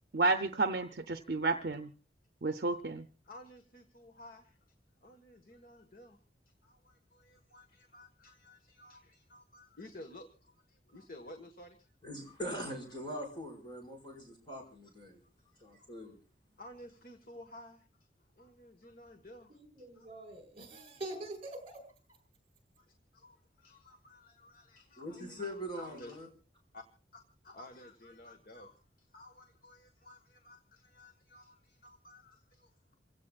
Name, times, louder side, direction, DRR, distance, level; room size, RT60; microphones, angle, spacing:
voice 1, 0.1-1.9 2.4-3.1, right 3 dB, 60° right, 7 dB, 0.7 m, -31 dB
voice 2, 3.2-4.6 5.0-6.2 6.4-11.9 15.5-15.9 16.6-19.6 19.9-20.1 22.8-22.9 23.1-26.3 26.7-26.8 27.1-32.9, left 1 dB, 55° left, 5 dB, 1.5 m, -54 dB
voice 3, 12.0-15.2 15.6-16.2 25.0-26.3, equal, 25° left, 2 dB, 5.3 m, -42 dB
voice 4, 19.5-22.2, right 2 dB, 35° right, 4 dB, 4.6 m, -45 dB
28.5 x 16.5 x 2.4 m, 0.35 s
head